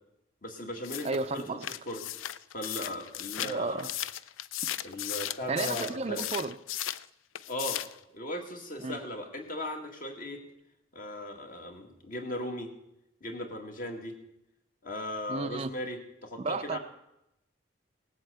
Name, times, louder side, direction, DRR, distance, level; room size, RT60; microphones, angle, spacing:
voice 1, 0.4-2.1 2.5-3.9 4.8-6.2 7.5-7.9 8.1-10.4 10.9-12.7 13.2-14.2 14.8-16.8, left 1 dB, 45° left, 3 dB, 2.1 m, -38 dB
sound 1, 0.8-7.1 7.3-8.0, left 12 dB, 85° left, 0.5 m, -36 dB
voice 2, 1.0-1.7 3.4-3.9 5.5-6.5 8.8-9.0 15.3-15.7 16.4-16.8, right 3 dB, 30° right, 10 dB, 0.4 m, -32 dB
18.0 x 8.0 x 8.0 m, 0.86 s
head